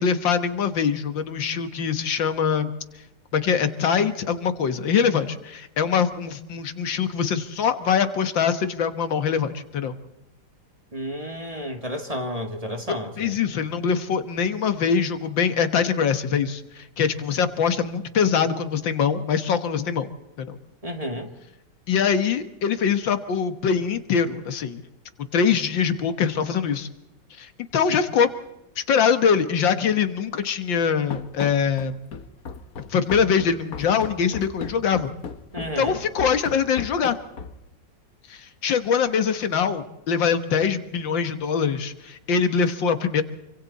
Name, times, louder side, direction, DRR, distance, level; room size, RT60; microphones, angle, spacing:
voice 1, 0.0-2.7 3.3-9.9 13.2-20.1 20.4-20.6 21.9-24.8 25.3-26.9 27.4-28.3 28.8-32.0 32.9-35.1 35.8-37.2 38.3-43.2, left 6 dB, 85° left, 9 dB, 2.1 m, -23 dB
voice 2, 10.9-13.4 20.8-21.3 35.5-36.0, equal, 20° right, 4 dB, 2.1 m, -31 dB
Run, 31.1-37.7, left 5 dB, 55° left, 1.6 m, -36 dB
27.0 x 25.5 x 4.2 m, 0.92 s
omnidirectional pair, 2.0 m